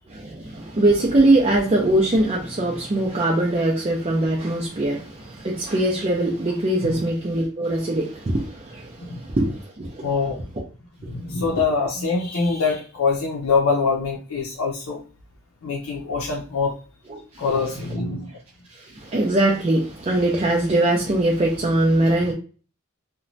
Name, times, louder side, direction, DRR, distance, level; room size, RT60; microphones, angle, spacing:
voice 1, 0.1-10.1 11.0-11.1 17.1-17.4 18.7-22.3, right 1 dB, 30° right, 0.4 m, -22 dB
voice 2, 10.0-10.4 11.1-15.0 15.6-16.8 17.4-18.4, left 4 dB, 85° left, 0.5 m, -24 dB
2.9 x 2.1 x 2.6 m
head